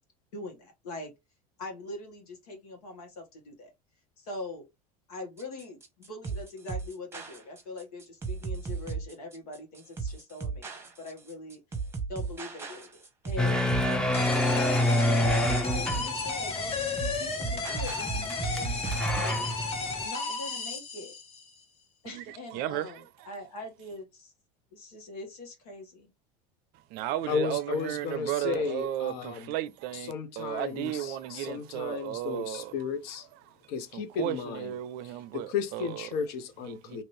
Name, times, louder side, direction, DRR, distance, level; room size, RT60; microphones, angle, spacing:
voice 1, 0.3-1.1 1.6-3.7 4.2-4.7 5.1-11.6 12.1-13.7 14.5-19.5 20.0-21.2 22.0-24.3 24.7-26.1, left 2 dB, 90° left, 1.5 m, -42 dB
sound 1, 5.4-19.4, right 5 dB, 15° right, 0.9 m, -36 dB
sound 2, 13.4-20.1, left 1 dB, 5° left, 0.5 m, -28 dB
sound 3, 14.1-21.5, left 4 dB, 30° left, 0.9 m, -33 dB
voice 2, 22.0-23.3 26.7-32.8 33.5-36.1 36.6-37.0, right 13 dB, 60° right, 0.5 m, -35 dB
voice 3, 27.3-29.5 30.1-33.3 33.7-34.8 35.3-37.0, left 6 dB, 60° left, 0.8 m, -34 dB
2.8 x 2.6 x 3.1 m
supercardioid pair, 110°, 19 cm